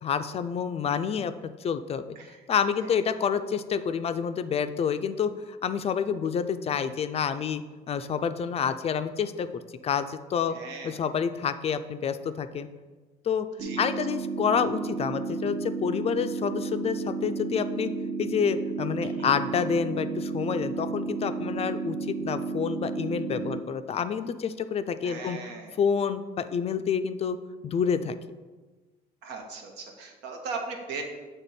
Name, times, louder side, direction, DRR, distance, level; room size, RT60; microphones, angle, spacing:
voice 1, 0.0-1.3 1.6-2.0 2.5-7.6 7.9-9.5 9.8-10.6 10.8-12.7 13.2-13.5 13.8-17.9 18.2-25.4 25.8-27.4 27.6-28.1, left 7 dB, 35° left, 11 dB, 0.3 m, -28 dB
voice 2, 10.5-11.1 13.6-13.9 19.0-19.3 25.0-25.7 29.2-31.0, right 4 dB, 90° right, 3 dB, 1.0 m, -38 dB
sound 1, 13.6-23.6, right 4 dB, 65° right, 0.8 m, -32 dB
7.1 x 3.5 x 4.2 m, 1.3 s
cardioid pair, 110°, 17 cm